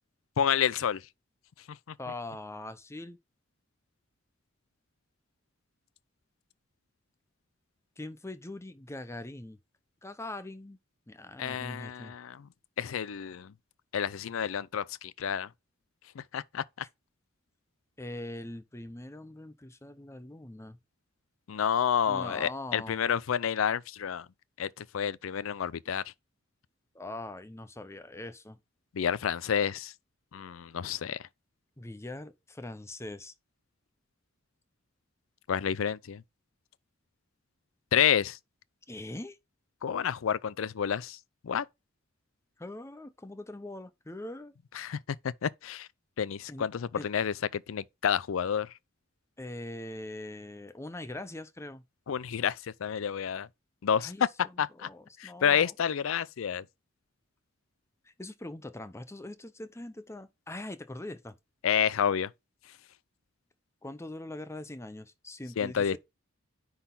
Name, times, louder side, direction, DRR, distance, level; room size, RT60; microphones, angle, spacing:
voice 1, 0.4-1.0 1.7-1.8 11.4-12.5 12.8-13.5 13.9-15.5 16.2-16.9 21.5-24.3 24.6-26.0 28.9-29.9 30.3-31.3 35.5-36.2 37.9-38.4 39.8-41.2 41.4-41.7 44.7-45.0 45.4-45.9 46.2-48.7 52.1-53.5 53.8-54.9 55.2-56.6 61.6-62.3 65.6-66.0, left 8 dB, 80° left, 0.4 m, -29 dB
voice 2, 2.0-3.2 8.0-9.6 10.0-10.8 11.1-12.1 18.0-20.8 22.1-23.0 26.9-28.6 31.8-33.3 38.9-39.4 42.6-44.5 46.5-46.7 47.0-47.1 49.4-51.8 54.0-55.7 58.0-61.4 63.8-66.0, left 1 dB, 15° left, 0.7 m, -42 dB
9.9 x 4.0 x 3.8 m
head